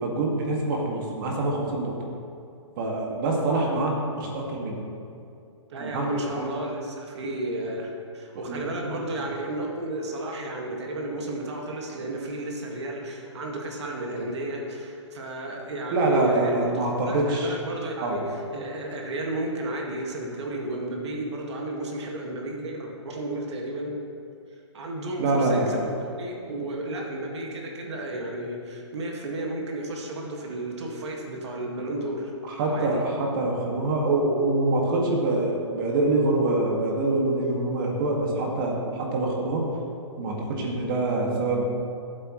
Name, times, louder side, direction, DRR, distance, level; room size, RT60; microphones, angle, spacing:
voice 1, 0.0-2.0 2.8-4.8 5.8-6.1 8.3-8.8 9.2-9.3 15.9-17.6 18.0-18.2 25.2-25.7 32.5-39.7 40.2-41.6, right 2 dB, 45° right, -1 dB, 2.1 m, -25 dB
voice 2, 5.7-16.6 17.1-24.0 24.7-25.9 26.2-32.3 32.7-33.0, right 1 dB, 65° right, 0 dB, 2.0 m, -33 dB
14.5 x 8.2 x 3.2 m, 2.6 s
hypercardioid pair, 145°, 16 cm